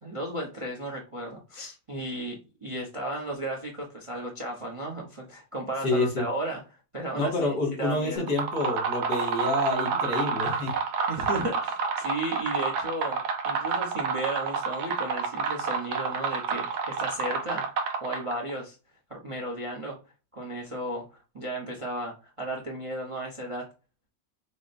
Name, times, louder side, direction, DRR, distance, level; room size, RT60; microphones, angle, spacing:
voice 1, 0.0-6.6 6.9-8.3 11.1-17.7 18.0-18.8 19.1-20.0 20.3-23.7, right 1 dB, 30° right, 1 dB, 0.5 m, -34 dB
voice 2, 5.8-6.3 7.2-10.7, left 2 dB, 80° left, 0 dB, 2.3 m, -28 dB
sound 1, 8.2-18.5, right 5 dB, 70° right, 1.2 m, -29 dB
5.9 x 2.1 x 2.5 m, 0.31 s
omnidirectional pair, 1.8 m